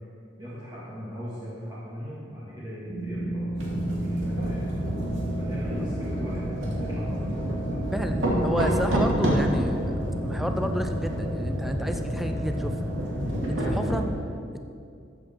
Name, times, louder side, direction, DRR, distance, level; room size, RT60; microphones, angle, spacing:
voice 1, 0.4-3.5 3.9-4.7 5.4-6.5 6.7-7.8, equal, 20° right, -10 dB, 2.0 m, -38 dB
sound 1, 2.9-9.5, right 2 dB, 40° right, 2.3 m, -33 dB
sound 2, 3.6-14.0, equal, 85° right, 2.4 m, -28 dB
voice 2, 7.9-10.0 10.2-12.9 13.5-14.1 14.5-14.6, equal, ahead, 6 dB, 0.4 m, -31 dB
13.0 x 7.9 x 4.5 m, 2.4 s
head